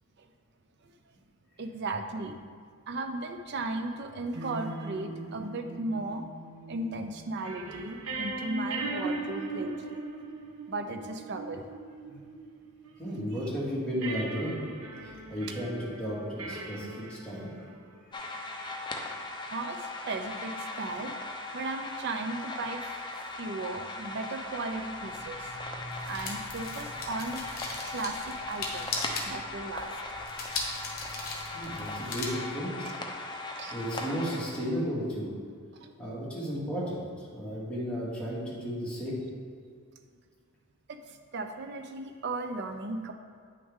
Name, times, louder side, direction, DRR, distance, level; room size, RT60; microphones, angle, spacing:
voice 1, 1.6-2.4 2.9-6.3 6.7-10.0 10.7-11.7 12.1-12.2 19.5-21.2 21.5-22.9 23.4-25.6 26.1-27.5 27.8-28.9 29.2-29.9 33.6-33.7 35.8-35.9 40.9-43.1, right 2 dB, 50° right, 7 dB, 0.5 m, -36 dB
sound 1, 4.3-13.4 14.0-18.2, right 2 dB, 75° right, 1.1 m, -39 dB
voice 2, 13.0-14.6 15.0-17.5 31.5-33.0 33.7-35.3 36.0-39.2, equal, 5° left, -9 dB, 2.0 m, -34 dB
sound 2, 18.1-34.7, left 2 dB, 20° left, 0.7 m, -39 dB
sound 3, 24.7-32.3, left 3 dB, 45° left, 1.3 m, -39 dB
9.1 x 6.2 x 3.6 m, 2.1 s
head